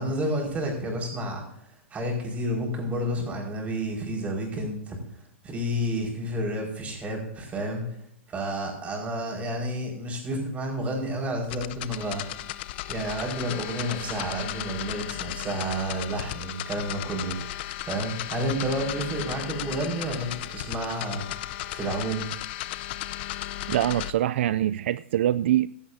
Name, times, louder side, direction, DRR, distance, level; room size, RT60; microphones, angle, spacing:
voice 1, 0.0-1.4 1.9-5.0 5.4-7.9 8.3-12.2 12.9-22.3, right 1 dB, 20° right, 5.0 m, -30 dB
sound 1, 11.4-24.1, left 14 dB, 55° left, 0.7 m, -35 dB
voice 2, 23.7-25.7, right 12 dB, 65° right, 0.4 m, -24 dB
16.0 x 11.5 x 2.8 m
hypercardioid pair, 125°, 7 cm